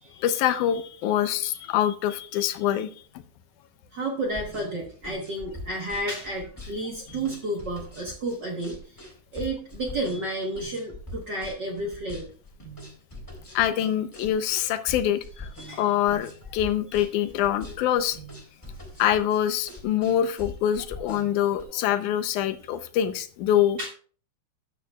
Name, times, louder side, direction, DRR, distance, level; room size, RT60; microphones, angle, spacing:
voice 1, 0.2-2.9 13.5-18.2 19.0-23.8, left 11 dB, 85° left, 10 dB, 2.1 m, -25 dB
voice 2, 3.9-8.8 9.3-12.3 15.6-15.8 23.8-23.9, right 1 dB, 55° right, 0 dB, 1.3 m, -31 dB
sound 1, 4.2-21.6, left 1 dB, 5° left, 2.4 m, -42 dB
12.5 x 9.4 x 2.3 m, 0.43 s
omnidirectional pair, 3.5 m